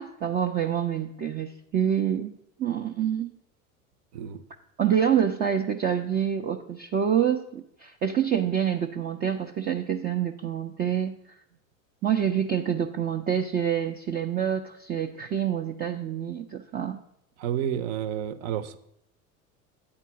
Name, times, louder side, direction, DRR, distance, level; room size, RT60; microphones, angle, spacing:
voice 1, 0.0-2.3 2.6-3.3 4.8-11.2 12.0-17.0, right 9 dB, 20° right, 3 dB, 0.5 m, -27 dB
voice 2, 17.4-18.8, right 10 dB, 50° right, 13 dB, 0.8 m, -30 dB
8.7 x 4.4 x 7.1 m, 0.75 s
figure-of-eight pair, 75°, 42 cm